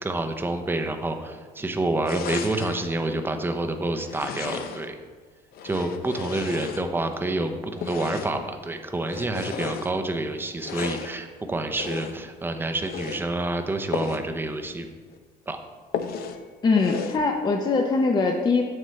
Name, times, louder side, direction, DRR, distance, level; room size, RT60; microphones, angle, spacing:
voice 1, 0.0-4.9 5.6-14.9 15.5-15.6, right 2 dB, 10° right, 6 dB, 0.6 m, -28 dB
sound 1, 2.0-2.9 4.0-5.0 5.5-7.2 7.8-8.5 9.0-9.9 10.6-11.2 11.7-12.3 12.8-13.3 13.9-14.3 14.7-14.8 15.1-15.2 15.9-16.4 16.8-17.3, left 6 dB, 65° left, 0.6 m, -34 dB
voice 2, 16.6-18.6, left 4 dB, 25° left, 2 dB, 0.6 m, -22 dB
7.6 x 6.6 x 3.2 m, 1.5 s
cardioid pair, 110°, 17 cm